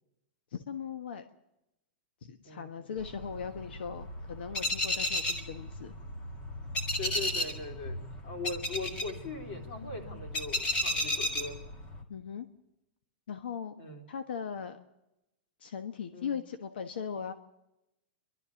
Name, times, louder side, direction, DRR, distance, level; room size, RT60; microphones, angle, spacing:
voice 1, 0.5-1.2 2.2-5.9 12.1-12.5 13.3-13.7 14.1-14.8 15.6-17.3, left 7 dB, 85° left, 9 dB, 1.3 m, -39 dB
voice 2, 2.4-2.9 7.0-11.6 13.8-14.1 16.1-16.3, left 3 dB, 40° left, 3 dB, 3.4 m, -40 dB
sound 1, 3.0-12.0, left 1 dB, 20° left, 1.7 m, -34 dB
30.0 x 12.5 x 7.1 m, 0.93 s
supercardioid pair, 175°, 5 cm